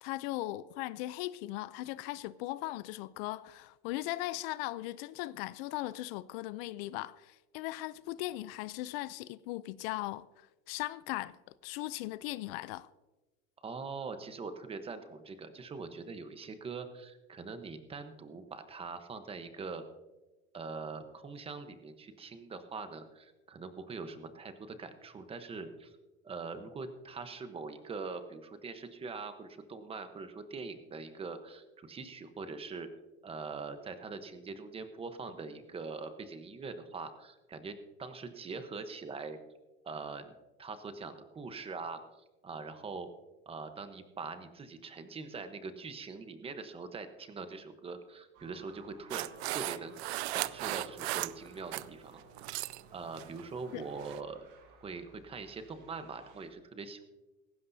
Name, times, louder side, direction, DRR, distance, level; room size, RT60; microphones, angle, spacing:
voice 1, 0.0-11.4 11.6-12.9 53.7-53.8, left 17 dB, 65° left, 0.5 m, -38 dB
voice 2, 13.6-19.8 20.5-26.0 26.2-32.9 33.2-39.4 39.8-40.3 40.6-42.0 42.4-43.1 43.5-50.0 50.3-52.6 52.9-54.4 54.8-57.1, right 4 dB, 20° right, 1.0 m, -43 dB
sound 1, 48.3-56.5, right 4 dB, 55° right, 4.8 m, -59 dB
sound 2, 49.1-51.9 52.2-52.8 53.2-53.4 54.0-54.2, right 19 dB, 85° right, 0.5 m, -36 dB
17.5 x 16.0 x 2.7 m
supercardioid pair, 145°, 32 cm